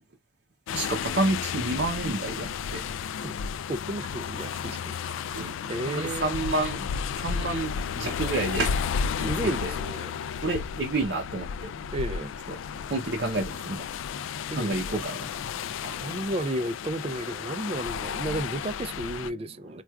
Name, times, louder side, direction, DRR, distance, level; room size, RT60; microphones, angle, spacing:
sound 1, 0.7-19.3, left 7 dB, 90° left, 0.3 m, -33 dB
voice 1, 0.7-2.8 5.3-5.6 5.9-6.9 7.2-8.7 9.2-9.7 10.4-11.7 12.5-12.6 12.9-13.9 14.5-15.3, right 2 dB, 65° right, 0.7 m, -29 dB
voice 2, 3.7-5.0 5.3-6.5 9.2-10.1 11.9-12.3 14.5-15.0 15.8-19.8, right 1 dB, 30° right, 0.4 m, -33 dB
4.4 x 2.4 x 2.3 m
head